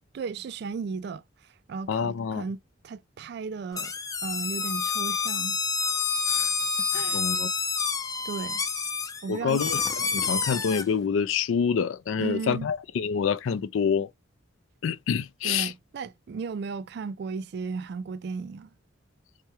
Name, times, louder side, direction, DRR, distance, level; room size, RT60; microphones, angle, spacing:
voice 1, 0.1-1.2 1.7-3.9 4.2-5.6 6.3-7.5 8.2-8.6 9.2-9.6 12.2-12.7 15.4-18.7, right 5 dB, 55° right, 0.3 m, -35 dB
voice 2, 1.9-2.4 7.1-7.5 9.3-9.8 10.1-14.1 14.8-15.7, left 6 dB, 85° left, 0.4 m, -26 dB
sound 1, 3.7-10.8, left 5 dB, 20° left, 0.4 m, -28 dB
4.6 x 2.1 x 2.8 m
head